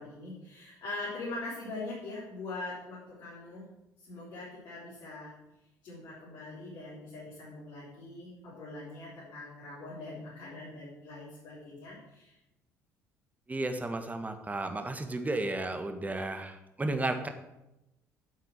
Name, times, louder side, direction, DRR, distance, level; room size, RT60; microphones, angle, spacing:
voice 1, 0.0-3.7 4.0-5.3 5.8-12.3, left 2 dB, 55° left, -7 dB, 4.2 m, -42 dB
voice 2, 13.5-17.3, right 2 dB, 20° right, 7 dB, 1.5 m, -33 dB
9.4 x 7.7 x 6.4 m, 0.91 s
figure-of-eight pair, 55°, 9 cm